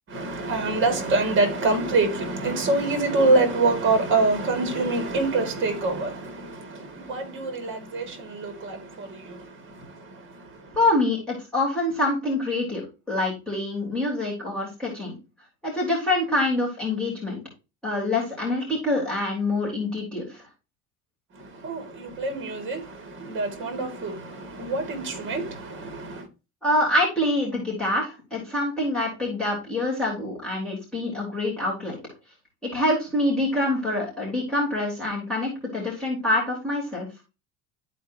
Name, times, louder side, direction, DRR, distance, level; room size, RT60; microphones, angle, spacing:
voice 1, 0.1-10.8 21.3-26.3, right 3 dB, 35° right, 2.2 m, -26 dB
voice 2, 10.7-15.2 15.6-17.4 17.8-20.4 26.6-32.0 32.6-37.1, left 1 dB, 5° left, 3.3 m, -25 dB
12.5 x 4.4 x 2.7 m
cardioid pair, 155°, 33 cm